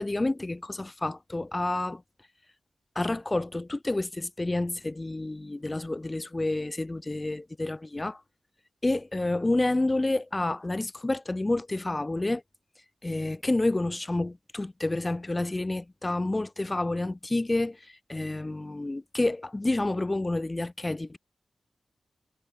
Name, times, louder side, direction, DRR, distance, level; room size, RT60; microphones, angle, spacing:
voice 1, 0.0-2.0 2.9-8.2 8.8-12.4 13.0-21.2, left 2 dB, 25° left, 6.4 m, -29 dB
wide cardioid pair, 75°, 0 cm